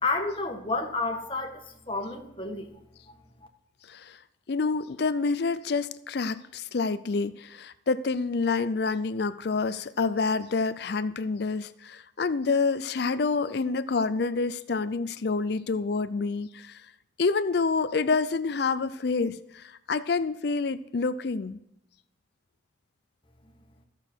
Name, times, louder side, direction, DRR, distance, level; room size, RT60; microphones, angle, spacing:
voice 1, 0.0-2.7 3.1-3.2, left 3 dB, 25° left, 2 dB, 1.5 m, -30 dB
voice 2, 3.9-4.2 4.5-16.8 17.2-21.6, left 4 dB, 55° left, 14 dB, 0.5 m, -28 dB
14.0 x 6.8 x 4.5 m, 0.82 s
head